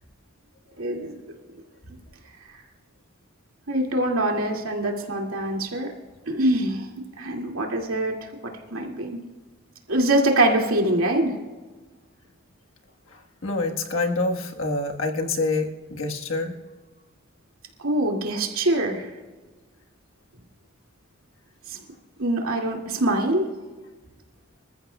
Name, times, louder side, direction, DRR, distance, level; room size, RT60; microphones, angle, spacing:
voice 1, 0.8-1.1 3.7-5.9 6.3-6.9 7.2-8.1 8.7-9.2 9.9-11.3 17.8-19.1 21.7-21.8 22.2-23.5, right 1 dB, 90° right, 1 dB, 2.3 m, -23 dB
voice 2, 13.1-16.6, left 3 dB, 70° left, 2 dB, 1.4 m, -27 dB
26.0 x 14.0 x 2.3 m, 1.3 s
head